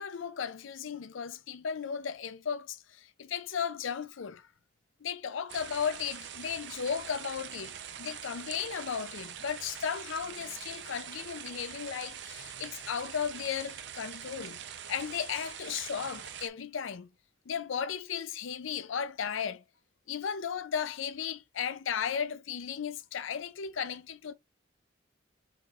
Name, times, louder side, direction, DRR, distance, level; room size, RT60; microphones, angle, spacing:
voice 1, 0.0-4.5 5.0-14.6 14.9-17.1 17.5-19.6 20.1-24.3, left 7 dB, 80° left, 0.5 m, -35 dB
sound 1, 5.5-16.5, right 9 dB, 60° right, 0.6 m, -44 dB
4.8 x 3.9 x 2.4 m
head